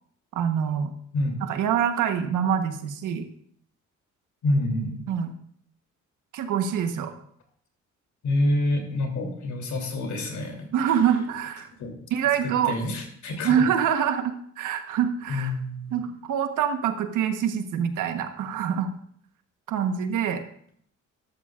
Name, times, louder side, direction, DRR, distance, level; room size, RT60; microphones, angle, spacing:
voice 1, 0.3-0.9 1.5-3.3 5.1-5.3 6.3-7.1 10.7-11.7 12.1-12.7 13.4-15.5 15.9-18.9 19.7-20.4, right 8 dB, 85° right, 7 dB, 1.2 m, -25 dB
voice 2, 4.4-5.0 8.2-10.7 10.9-11.0 11.8-12.0 12.4-13.5 15.3-15.9, left 1 dB, 70° left, 2 dB, 3.2 m, -27 dB
13.5 x 12.5 x 2.5 m, 0.63 s
cardioid pair, 90°, 30 cm